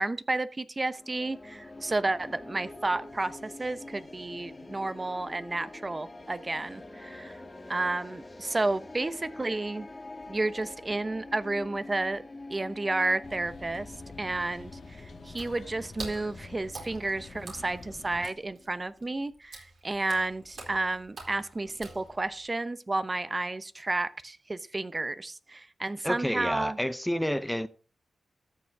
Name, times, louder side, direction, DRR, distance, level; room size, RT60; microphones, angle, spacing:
voice 1, 0.0-7.3 7.7-9.9 10.3-12.2 12.5-13.9 14.2-26.8, right 2 dB, 35° right, 0.8 m, -31 dB
sound 1, 1.0-19.2, left 2 dB, 35° left, 2.4 m, -46 dB
sound 2, 13.2-18.3, left 4 dB, 70° left, 1.3 m, -47 dB
Water / Splash splatter, 15.4-22.5, right 3 dB, 70° right, 4.4 m, -46 dB
voice 2, 26.0-27.7, equal, 5° left, 0.7 m, -29 dB
13.5 x 7.0 x 3.5 m
supercardioid pair, 40°, 0 cm